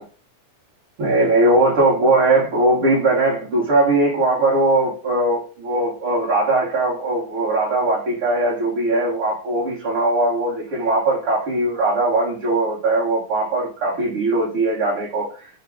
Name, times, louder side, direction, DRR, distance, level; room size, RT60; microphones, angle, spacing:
voice 1, 1.0-15.5, right 2 dB, 55° right, -7 dB, 1.7 m, -20 dB
5.0 x 2.2 x 3.5 m, 0.39 s
omnidirectional pair, 3.6 m